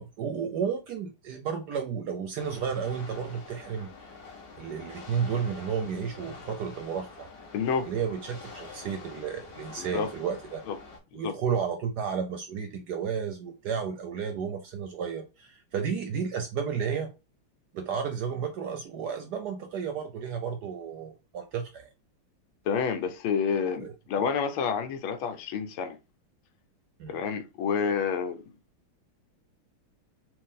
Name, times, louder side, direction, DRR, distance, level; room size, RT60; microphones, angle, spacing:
voice 1, 0.0-3.9 4.6-7.3 7.8-10.6 11.1-17.1 17.7-21.9 23.8-23.9 27.0-27.2, right 7 dB, 70° right, 1.0 m, -32 dB
sound 1, 2.4-11.0, left 4 dB, 60° left, 1.8 m, -46 dB
voice 2, 7.5-7.9 9.8-10.1 10.7-10.8 11.2-11.3 22.6-26.0 27.1-28.5, left 6 dB, 80° left, 1.6 m, -29 dB
4.6 x 2.6 x 3.7 m
omnidirectional pair, 2.3 m